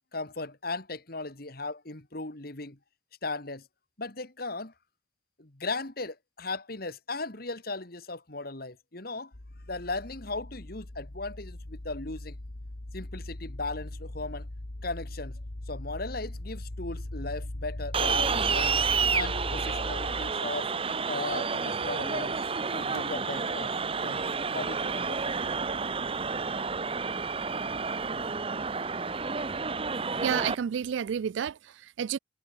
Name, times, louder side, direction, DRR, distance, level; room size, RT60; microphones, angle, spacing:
voice 1, 0.1-2.8 3.2-3.7 4.0-4.7 5.4-9.3 9.7-12.4 12.9-14.5 14.8-15.4 15.7-18.7 19.1-20.7 21.1-22.4 22.7-23.7 24.0-25.3, left 3 dB, 50° left, 2.2 m, -37 dB
sound 1, 9.3-20.3, left 1 dB, 65° left, 1.6 m, -39 dB
sound 2, 17.9-30.6, right 5 dB, 30° right, 0.9 m, -30 dB
voice 2, 30.2-32.2, right 8 dB, 75° right, 0.3 m, -30 dB
head